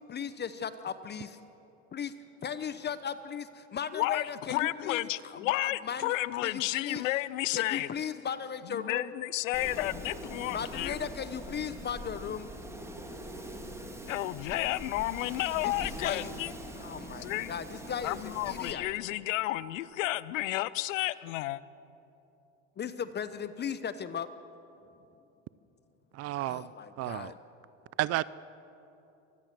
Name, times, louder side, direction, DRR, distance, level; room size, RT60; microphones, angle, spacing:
voice 1, 0.1-1.4 1.9-2.1 2.4-7.0 7.5-9.1 10.5-12.5 15.6-16.3 16.7-18.2 18.5-18.8 22.8-24.3 26.5-27.4, left 7 dB, 25° left, 13 dB, 0.9 m, -37 dB
voice 2, 3.9-7.9 8.6-11.0 14.1-16.5 17.2-17.5 18.0-21.6, left 17 dB, 75° left, 18 dB, 0.8 m, -32 dB
Wind, 9.5-18.7, equal, 5° right, 2.8 m, -43 dB
voice 3, 26.1-26.7 27.0-27.3 28.0-28.2, right 16 dB, 40° right, 19 dB, 0.5 m, -31 dB
24.5 x 15.5 x 7.6 m, 2.9 s
hypercardioid pair, 95°, 39 cm